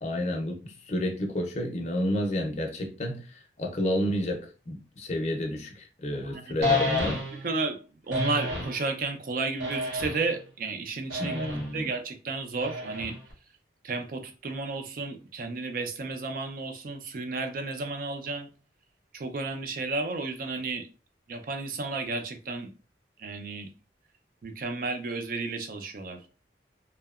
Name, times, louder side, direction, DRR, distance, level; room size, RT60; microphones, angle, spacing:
voice 1, 0.0-7.2 11.2-11.9, left 1 dB, 40° left, 0.5 m, -30 dB
voice 2, 6.2-6.7 7.4-7.8 8.1-13.2 13.8-18.5 19.1-20.9 21.3-22.7 23.2-23.7 24.4-26.3, right 3 dB, 50° right, 0.4 m, -32 dB
sound 1, 6.6-7.5 8.1-8.8 9.6-10.3 11.1-11.7 12.6-13.3, left 2 dB, 85° right, 0.8 m, -30 dB
2.7 x 2.1 x 2.3 m
head